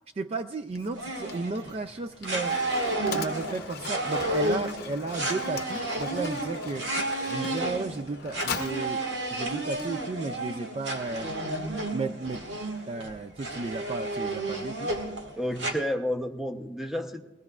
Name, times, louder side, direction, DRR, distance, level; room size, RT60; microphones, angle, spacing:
voice 1, 0.2-2.6 3.1-6.9 7.3-9.0 9.3-11.3 11.9-12.4 12.9-14.9, right 3 dB, 35° right, 10 dB, 0.3 m, -34 dB
Mechanisms, 0.7-10.4, left 6 dB, 55° left, 0.7 m, -41 dB
sound 1, 0.9-1.8 2.2-15.7, right 2 dB, 70° right, 1.8 m, -32 dB
voice 2, 15.4-17.2, equal, 5° right, 4 dB, 0.8 m, -30 dB
21.5 x 16.5 x 2.4 m, 1.1 s
head